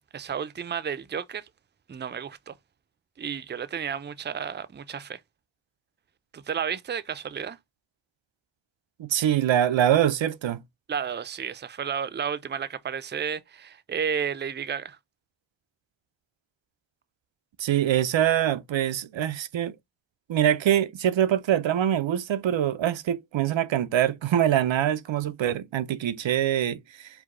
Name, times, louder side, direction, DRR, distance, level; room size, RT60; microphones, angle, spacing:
voice 1, 0.0-1.5 1.9-2.6 3.2-5.2 6.3-7.6 10.9-15.0, right 7 dB, 25° right, 0.4 m, -32 dB
voice 2, 9.0-10.6 17.6-19.7 20.3-27.1, right 11 dB, 90° right, 0.6 m, -24 dB
4.8 x 2.1 x 3.7 m
wide cardioid pair, 75°, 44 cm